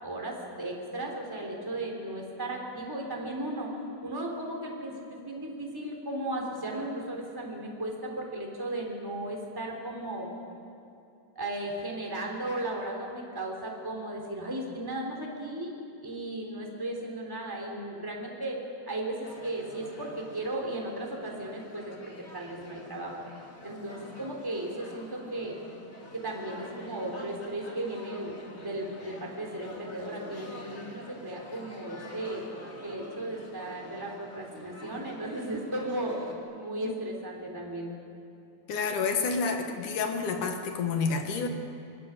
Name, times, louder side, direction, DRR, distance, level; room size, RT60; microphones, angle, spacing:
voice 1, 0.0-3.7 4.0-10.3 11.3-15.7 16.0-18.6 18.9-21.9 22.3-23.3 23.6-25.5 26.1-28.3 28.6-32.5 32.8-36.2 36.5-37.9, right 1 dB, 5° right, 0 dB, 3.3 m, -35 dB
sound 1, 19.2-36.4, left 1 dB, 20° left, 2.5 m, -47 dB
voice 2, 38.7-41.5, left 4 dB, 70° left, 5 dB, 3.0 m, -29 dB
25.5 x 21.5 x 7.3 m, 2.7 s
omnidirectional pair, 3.8 m